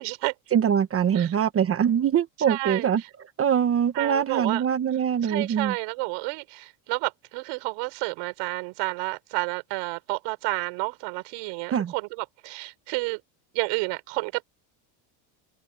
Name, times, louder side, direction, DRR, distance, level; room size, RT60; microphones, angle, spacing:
voice 1, 0.0-0.3 1.2-1.3 2.5-2.9 3.9-4.6 5.2-13.2 13.5-14.4, right 27 dB, 70° right, 5.4 m, -30 dB
voice 2, 0.5-3.0 3.4-5.7 11.7-11.9, right 8 dB, 30° right, 1.1 m, -23 dB
cardioid pair, 140°, 49 cm